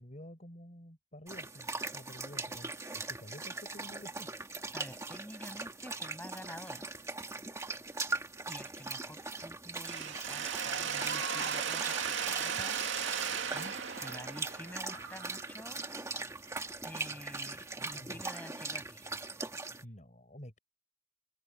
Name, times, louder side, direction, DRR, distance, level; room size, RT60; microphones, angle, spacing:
voice 1, 0.0-4.3 13.5-13.7 17.8-18.2 19.8-20.6, equal, 40° left, 5.7 m, -50 dB
sound 1, 1.3-19.8, right 3 dB, 15° right, 1.7 m, -41 dB
voice 2, 4.7-6.8 8.5-12.8 14.0-15.8 16.8-19.1, left 1 dB, 10° left, 7.2 m, -49 dB
Mechanisms, 9.8-15.7, right 7 dB, 90° right, 2.4 m, -36 dB
open air
head